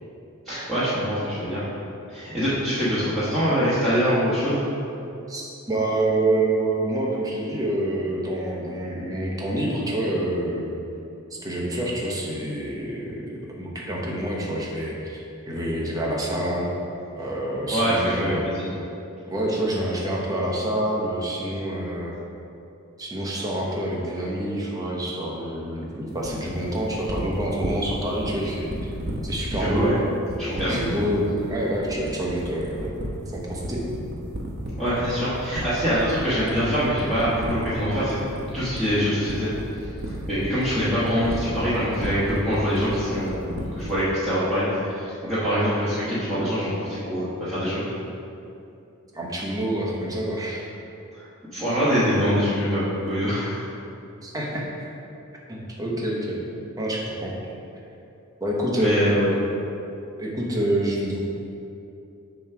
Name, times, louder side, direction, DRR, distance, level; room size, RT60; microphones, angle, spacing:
voice 1, 0.4-1.6 2.1-4.6 17.7-18.6 29.5-29.9 30.4-30.8 34.8-38.2 38.5-39.5 40.3-44.7 44.9-47.8 51.2-53.5 58.8-59.2, equal, ahead, -14 dB, 1.3 m, -24 dB
voice 2, 5.3-10.7 11.4-13.3 13.6-16.7 17.1-18.4 19.3-22.1 23.0-28.9 29.2-29.9 30.7-32.9 33.3-33.8 49.1-50.6 54.2-54.9 55.5-56.4 56.8-57.4 58.4-59.4 60.2-61.2, right 1 dB, 15° right, -3 dB, 0.9 m, -27 dB
sound 1, 26.2-44.0, right 1 dB, 50° right, 0.9 m, -33 dB
7.2 x 3.1 x 5.8 m, 2.7 s
head